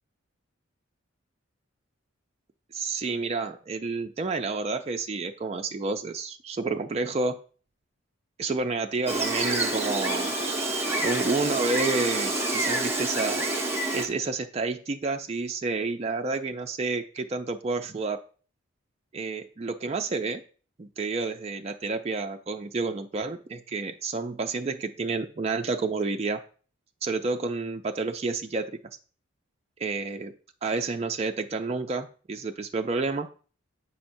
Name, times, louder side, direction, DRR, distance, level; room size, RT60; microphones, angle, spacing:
voice 1, 2.7-7.4 8.4-10.3 11.0-13.5 13.9-18.2 19.1-20.4 20.8-26.4 27.0-28.8 29.8-30.3 30.6-33.3, right 3 dB, 30° right, 5 dB, 0.3 m, -30 dB
Gull seagull, 9.1-14.1, right 2 dB, 10° right, 0.8 m, -27 dB
7.9 x 5.7 x 2.6 m, 0.41 s
head